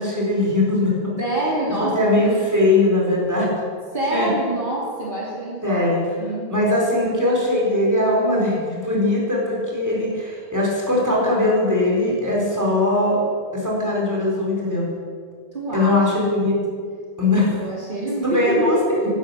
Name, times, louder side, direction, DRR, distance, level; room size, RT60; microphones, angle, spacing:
voice 1, 0.0-1.2 1.9-3.5 4.1-4.3 5.6-6.0 6.5-13.2 13.5-14.9 15.7-16.6 17.2-17.5 18.2-18.8, left 2 dB, 15° right, -4 dB, 4.5 m, -20 dB
voice 2, 1.2-2.1 3.9-5.9 6.2-6.6 7.0-7.1 15.5-16.0 17.2-19.1, right 1 dB, 55° right, -5 dB, 3.0 m, -25 dB
12.5 x 11.0 x 8.8 m, 2.1 s
omnidirectional pair, 1.0 m